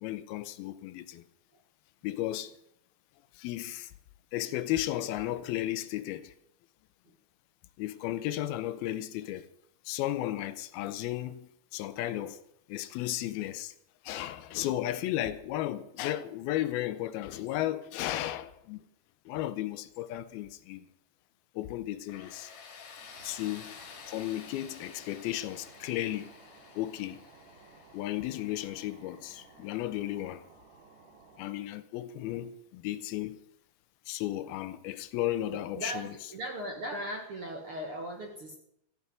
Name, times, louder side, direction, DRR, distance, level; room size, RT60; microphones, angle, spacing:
voice 1, 0.0-1.3 2.0-2.5 3.3-3.9 4.3-6.3 7.8-9.5 9.9-12.4 12.7-13.7 14.0-18.8 19.3-20.9 21.6-22.5 23.2-23.8 24.1-26.3 26.8-27.2 27.9-30.5 31.4-33.4 34.1-36.1, left 14 dB, 80° left, 2.4 m, -34 dB
Tools, 22.1-30.8, left 6 dB, 55° left, 2.7 m, -52 dB
sound 1, 22.9-31.7, right 4 dB, 25° right, 2.3 m, -57 dB
voice 2, 35.5-38.6, right 1 dB, 55° right, 1.7 m, -38 dB
15.0 x 7.0 x 9.2 m
omnidirectional pair, 4.5 m